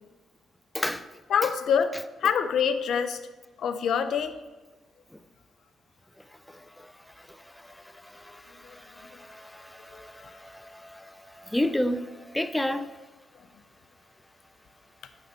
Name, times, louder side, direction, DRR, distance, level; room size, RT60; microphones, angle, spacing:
voice 1, 0.7-1.1 6.5-13.0, left 1 dB, 5° left, 0.4 m, -33 dB
voice 2, 1.3-3.2 3.6-4.4 8.6-8.8 9.1-9.2 9.9-10.0, left 7 dB, 65° left, 0.5 m, -26 dB
9.3 x 4.0 x 5.4 m
cardioid pair, 90°, 0 cm